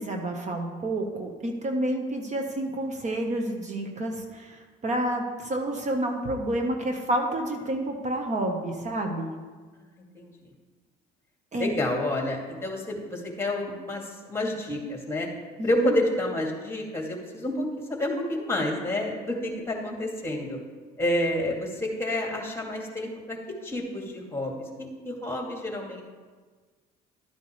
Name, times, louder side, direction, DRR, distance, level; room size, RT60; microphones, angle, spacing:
voice 1, 0.0-9.3 11.5-11.7 15.6-16.0, right 1 dB, 40° right, 3 dB, 1.4 m, -29 dB
voice 2, 9.8-10.3 11.6-15.3 15.6-20.6 21.0-23.4 23.6-26.0, left 1 dB, 15° left, 0 dB, 2.5 m, -29 dB
12.5 x 9.2 x 3.4 m, 1.5 s
supercardioid pair, 85°, 19 cm